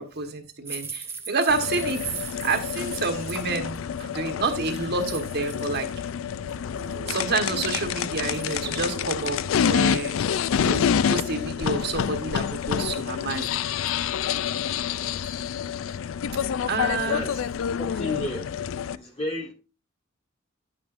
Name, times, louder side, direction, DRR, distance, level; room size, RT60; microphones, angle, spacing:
voice 1, 0.0-5.9 7.1-10.2 10.6-13.5 16.7-17.3, right 3 dB, 50° right, 1.2 m, -29 dB
sound 1, 0.6-6.0 6.3-6.9 7.5-7.6 8.0-8.7 9.2-9.3 9.6-9.7 10.2-10.9 11.9-13.9 14.5-14.6 14.9-15.5 16.4-16.7 17.0-17.3 17.6-17.7, right 5 dB, 10° right, 0.7 m, -42 dB
sound 2, 1.5-19.0, left 8 dB, 70° left, 0.4 m, -28 dB
sound 3, 6.2-12.9, right 5 dB, 80° right, 1.4 m, -45 dB
voice 2, 17.1-17.4 17.8-19.5, left 2 dB, 30° left, 2.1 m, -34 dB
9.4 x 8.8 x 2.5 m
head